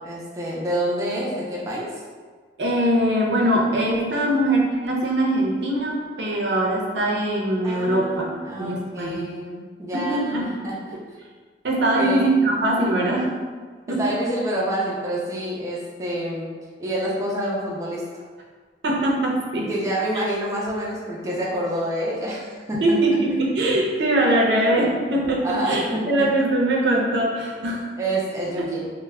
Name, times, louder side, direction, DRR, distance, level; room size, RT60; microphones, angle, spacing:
voice 1, 0.0-1.9 7.6-10.9 12.0-12.2 14.0-16.5 16.8-18.2 19.7-23.0 25.4-26.2 28.0-28.9, right 1 dB, 20° right, -5 dB, 0.3 m, -27 dB
voice 2, 2.6-8.2 8.6-9.2 9.9-10.5 11.6-13.3 13.9-14.0 18.8-19.7 20.1-20.2 22.8-27.8 28.6-28.7, right 1 dB, 70° right, -2 dB, 0.5 m, -22 dB
2.1 x 2.1 x 3.4 m, 1.5 s
head